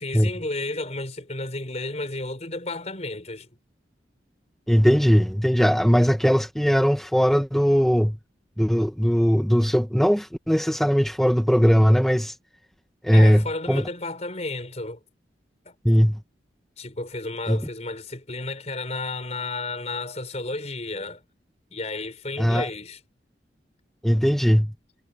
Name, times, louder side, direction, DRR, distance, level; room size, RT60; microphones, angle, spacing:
voice 1, 0.0-3.6 13.1-15.0 15.6-15.7 16.8-21.2 21.7-23.0, left 2 dB, 40° left, 4.5 m, -32 dB
voice 2, 4.7-8.2 8.6-12.3 13.0-13.8 15.8-16.2 17.5-17.6 22.4-22.7 24.0-24.7, equal, ahead, 0.9 m, -19 dB
head